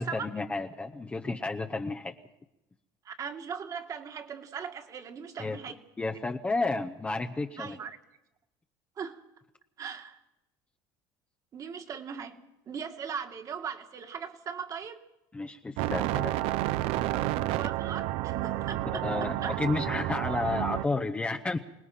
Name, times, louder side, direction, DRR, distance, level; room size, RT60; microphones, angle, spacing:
voice 1, 0.0-2.1 5.4-5.6 6.0-7.8 15.3-16.3 19.0-21.6, left 3 dB, 10° left, 4 dB, 0.8 m, -31 dB
voice 2, 3.0-5.8 7.6-7.9 9.0-9.2 9.8-10.2 11.5-15.0 17.5-19.6, right 7 dB, 30° right, 6 dB, 1.8 m, -39 dB
sound 1, 15.8-20.9, right 15 dB, 65° right, 0.7 m, -30 dB
25.5 x 19.0 x 5.9 m, 0.91 s
cardioid pair, 150°, 11 cm